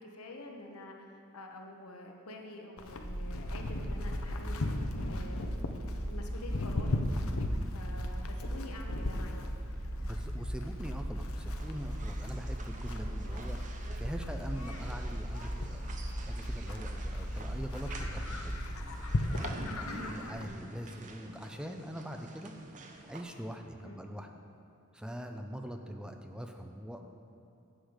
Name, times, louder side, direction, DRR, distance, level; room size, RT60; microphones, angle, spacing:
voice 1, 0.0-5.6 6.1-7.0 7.7-9.5 13.2-13.4 14.5-14.7 19.7-20.4 23.8-24.1, left 1 dB, 80° left, 2 dB, 1.1 m, -47 dB
Livestock farm animals working animals, 2.8-20.5, left 2 dB, 65° left, 0.7 m, -39 dB
sound 1, 3.0-18.9, equal, 80° right, 1.9 m, -38 dB
voice 2, 10.0-18.6 19.3-22.5 23.1-24.3 24.9-27.0, equal, 5° right, 4 dB, 0.5 m, -43 dB
sound 2, 11.6-23.2, right 2 dB, 35° right, 0.7 m, -49 dB
10.0 x 4.9 x 8.0 m, 2.7 s
head